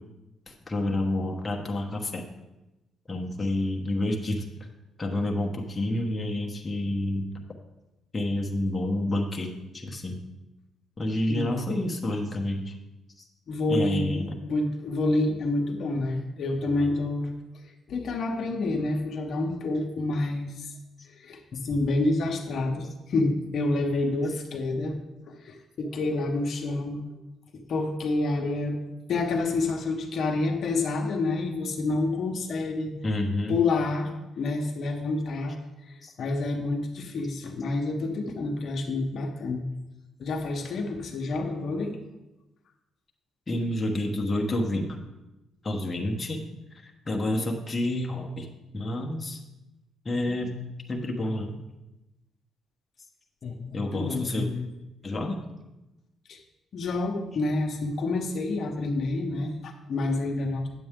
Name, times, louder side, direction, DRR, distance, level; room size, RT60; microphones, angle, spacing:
voice 1, 0.5-2.2 3.1-4.5 5.0-7.3 8.1-10.2 11.0-12.7 13.2-13.3 13.7-14.4 33.0-33.6 36.0-36.1 43.5-45.0 45.6-48.5 48.7-49.4 50.0-50.6 50.9-51.6 53.7-54.5 55.0-55.5, left 1 dB, 25° left, 1 dB, 1.2 m, -29 dB
voice 2, 13.5-17.3 17.9-20.7 21.1-25.0 25.3-27.0 27.5-28.8 29.1-32.9 33.5-39.7 40.2-42.0 53.4-54.7 56.3-56.4 56.7-60.7, left 2 dB, 60° left, 2 dB, 1.1 m, -28 dB
9.4 x 7.8 x 3.7 m, 1.0 s
cardioid pair, 90°, 0 cm